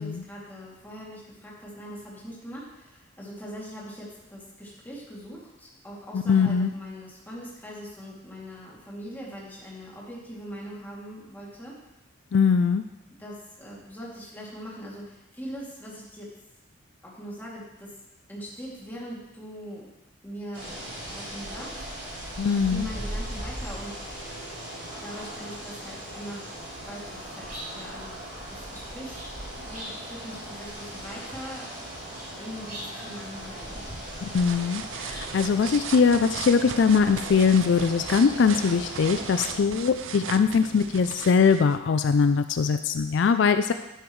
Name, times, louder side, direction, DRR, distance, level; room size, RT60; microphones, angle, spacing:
voice 1, 0.0-11.8 13.2-16.3 17.0-18.0 18.3-19.9 20.2-20.8 21.1-21.8 22.5-24.0 25.0-26.5 26.8-28.1 28.5-29.2 29.5-31.7 32.4-33.9, equal, 10° left, -6 dB, 2.5 m, -41 dB
voice 2, 6.1-6.7 12.3-12.8 22.4-22.9 34.3-43.7, left 5 dB, 65° left, 10 dB, 0.4 m, -22 dB
sound 1, 20.5-39.6, right 1 dB, 40° right, 3.4 m, -38 dB
sound 2, 34.0-41.8, right 7 dB, 80° right, 0.5 m, -38 dB
11.0 x 10.0 x 3.1 m, 0.96 s
head